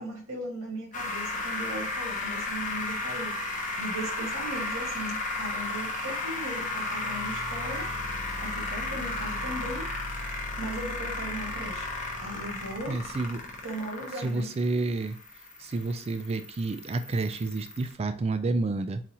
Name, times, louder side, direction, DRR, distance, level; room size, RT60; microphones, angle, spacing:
voice 1, 0.0-7.9 8.4-9.9 10.6-11.9 12.2-13.0 13.6-14.5, right 1 dB, 80° right, -1 dB, 1.6 m, -38 dB
sound 1, 0.9-17.9, left 2 dB, 40° left, 0.7 m, -34 dB
voice 2, 12.9-13.4 14.2-15.2 15.6-19.0, right 3 dB, 30° right, 9 dB, 0.3 m, -29 dB
4.0 x 2.4 x 2.8 m, 0.41 s
head